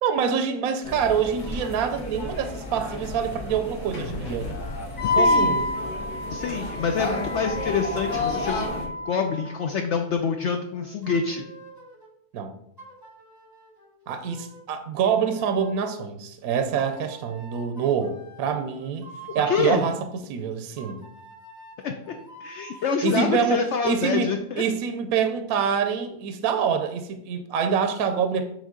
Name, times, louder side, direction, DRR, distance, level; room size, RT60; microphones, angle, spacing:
voice 1, 0.0-4.5 5.2-5.7 12.3-12.6 14.1-19.1 19.3-20.0 20.3-21.0 23.0-28.5, right 7 dB, 70° right, 8 dB, 1.0 m, -26 dB
sound 1, 0.8-8.9, left 2 dB, 90° left, 2.2 m, -33 dB
voice 2, 5.0-5.6 6.3-11.5 19.5-19.9 21.8-22.2 22.4-24.6, left 5 dB, 70° left, 5 dB, 0.7 m, -26 dB
Wind instrument woodwind instrument, 5.0-9.6, left 2 dB, 35° left, 1.2 m, -27 dB
sound 2, 7.1-8.1 8.7-12.1 12.8-14.6 15.0-16.1 16.8-20.1 20.8-23.0, right 2 dB, 15° left, 1.0 m, -47 dB
8.4 x 3.4 x 3.7 m, 0.75 s
omnidirectional pair, 1.7 m